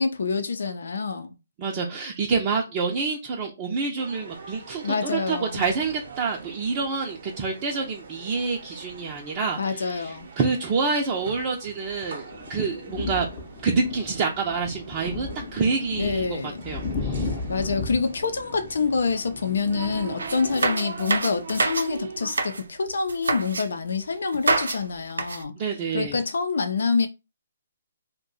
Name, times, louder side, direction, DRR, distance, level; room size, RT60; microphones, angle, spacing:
voice 1, 0.0-1.3 4.8-5.6 9.6-10.3 16.0-16.6 17.2-25.5 25.9-27.1, left 4 dB, 75° left, 0.5 m, -26 dB
voice 2, 1.6-13.3 13.6-17.3 25.6-26.2, right 4 dB, 30° right, 0.6 m, -27 dB
sound 1, 4.0-22.3, right 5 dB, 65° right, 0.8 m, -42 dB
sound 2, 12.2-20.7, left 3 dB, 25° left, 0.7 m, -35 dB
sound 3, 20.2-21.9 22.2-22.6 23.1-23.6 24.3-24.8 25.1-25.4, right 3 dB, 90° right, 0.5 m, -26 dB
2.6 x 2.2 x 3.9 m
hypercardioid pair, 150°, 0 cm